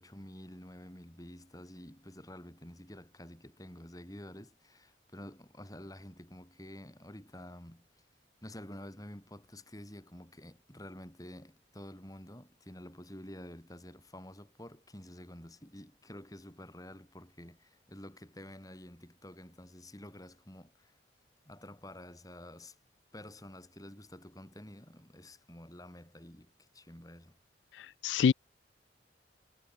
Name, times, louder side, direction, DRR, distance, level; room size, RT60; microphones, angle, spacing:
voice 1, 0.0-8.1 8.4-21.0 21.4-22.8 23.1-27.4, left 1 dB, 20° left, 6.2 m, -49 dB
voice 2, 27.8-28.3, left 6 dB, 80° left, 0.3 m, -27 dB
head